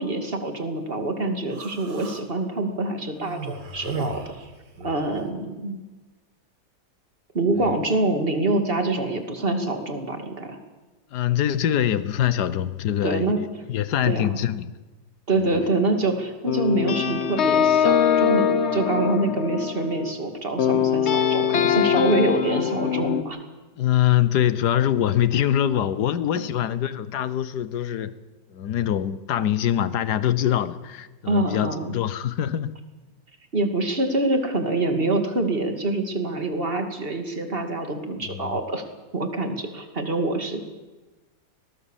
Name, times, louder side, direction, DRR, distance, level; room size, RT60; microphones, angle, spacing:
voice 1, 0.0-4.2 4.8-5.8 7.3-10.6 13.0-13.4 14.1-14.4 15.3-18.5 18.7-23.4 31.3-31.9 33.5-38.8 39.1-40.6, right 2 dB, 30° right, 5 dB, 2.6 m, -25 dB
Human voice, 1.5-2.2 3.2-5.1, right 4 dB, 65° right, 2.7 m, -35 dB
voice 2, 11.1-14.7 23.8-28.1 28.5-32.7 38.2-38.6, left 11 dB, 70° left, 15 dB, 1.5 m, -24 dB
sound 1, 15.5-16.1 16.5-20.2 20.6-23.2, left 8 dB, 45° left, 1.1 m, -22 dB
22.5 x 19.0 x 7.4 m, 1.2 s
omnidirectional pair, 1.9 m